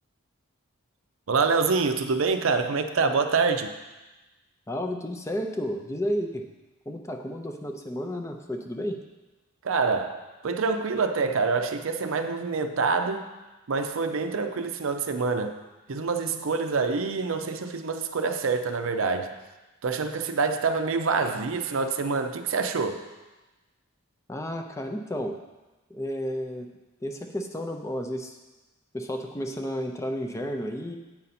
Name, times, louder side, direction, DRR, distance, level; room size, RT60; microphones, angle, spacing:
voice 1, 1.3-3.7 9.6-13.3 13.7-15.6 15.9-19.3 19.8-23.0, right 4 dB, 70° right, 7 dB, 0.5 m, -26 dB
voice 2, 4.7-6.5 6.9-9.0 24.3-25.4 25.9-26.7 27.0-28.4 28.9-31.0, equal, 15° left, 3 dB, 0.4 m, -32 dB
8.4 x 5.5 x 4.2 m, 1.1 s
head